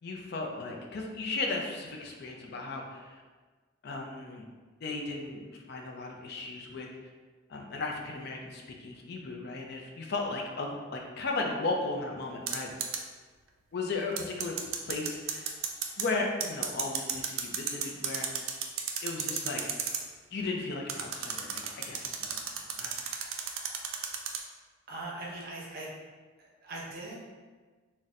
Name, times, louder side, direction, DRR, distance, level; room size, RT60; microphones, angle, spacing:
voice 1, 0.0-3.2 3.8-4.5 4.8-6.9 7.5-12.7 13.7-14.6 14.8-15.5 16.0-18.6 19.0-19.6 20.3-23.0, left 3 dB, 55° left, 1 dB, 0.4 m, -36 dB
sound 1, 12.5-13.0 14.2-16.1 16.4-20.0 20.9-24.4, right 7 dB, 85° right, 0.4 m, -33 dB
voice 2, 24.9-25.9 26.4-27.2, right 2 dB, 50° right, -4 dB, 0.7 m, -40 dB
4.0 x 2.1 x 2.4 m, 1.4 s
head